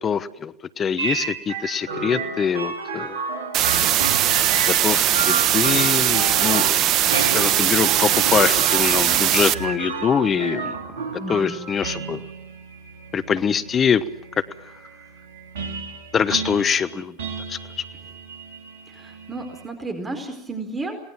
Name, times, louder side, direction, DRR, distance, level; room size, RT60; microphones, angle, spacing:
voice 1, 0.0-3.2 4.7-6.7 7.3-10.7 11.3-12.2 13.1-14.0 16.1-17.1 17.5-17.6, left 7 dB, 30° left, 15 dB, 1.1 m, -23 dB
sound 1, 1.0-19.7, right 5 dB, 70° right, 4.1 m, -31 dB
sound 2, 3.5-9.5, right 11 dB, 45° right, 1.3 m, -20 dB
voice 2, 11.2-11.6 18.9-21.0, right 2 dB, 20° right, 7 dB, 4.6 m, -32 dB
28.5 x 19.5 x 7.6 m, 0.81 s
figure-of-eight pair, 80°, 0 cm